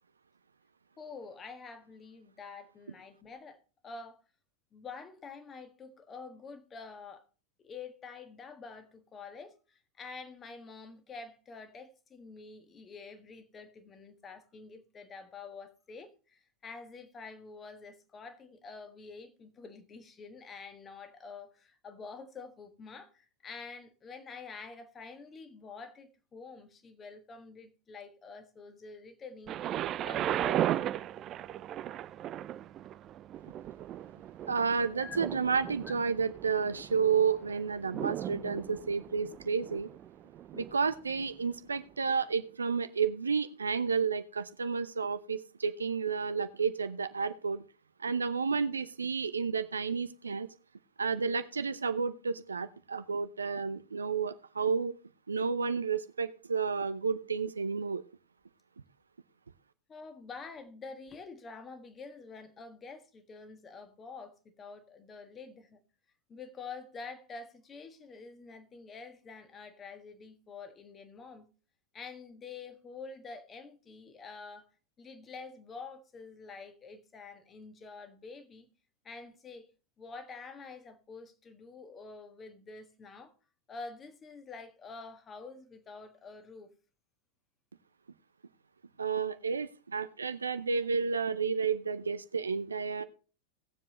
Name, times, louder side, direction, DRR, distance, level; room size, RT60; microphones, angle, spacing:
voice 1, 1.0-4.2 4.7-7.2 7.6-29.6 30.0-30.8 34.9-35.2 35.8-35.9 59.9-65.8 66.3-71.5 71.9-74.7 75.0-78.7 79.0-79.7 80.0-83.3 83.7-86.7, left 4 dB, 20° left, 1.6 m, -47 dB
Thunder, 29.5-41.3 42.1-42.2, right 12 dB, 30° right, 0.5 m, -37 dB
voice 2, 34.5-39.9 40.5-47.6 48.0-50.5 51.0-54.9 55.3-58.0 89.0-93.0, right 5 dB, 75° right, 0.6 m, -31 dB
18.5 x 7.5 x 3.1 m
figure-of-eight pair, 90°, 0 cm